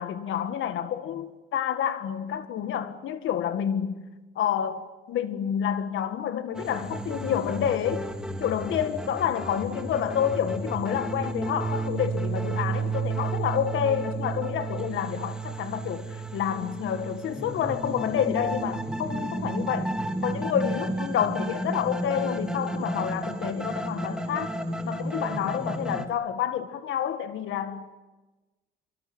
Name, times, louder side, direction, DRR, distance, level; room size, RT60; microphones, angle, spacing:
voice 1, 0.0-4.0 4.4-8.1 8.4-19.9 20.2-24.5 24.9-27.9, left 9 dB, 80° left, 1.9 m, -29 dB
sound 1, 6.5-26.1, right 2 dB, 5° right, 2.6 m, -32 dB
26.0 x 24.5 x 9.0 m
cardioid pair, 90°, 20 cm